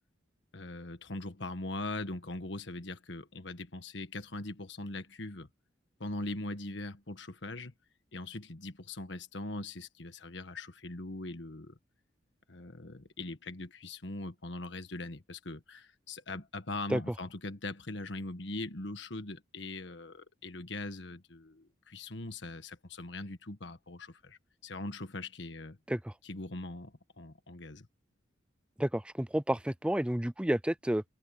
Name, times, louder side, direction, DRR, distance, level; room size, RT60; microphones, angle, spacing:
voice 1, 0.5-5.5 6.0-7.7 8.1-11.8 12.5-25.8 26.2-27.9, left 2 dB, 65° left, 1.5 m, -41 dB
voice 2, 28.8-31.0, right 1 dB, 5° right, 0.4 m, -30 dB
head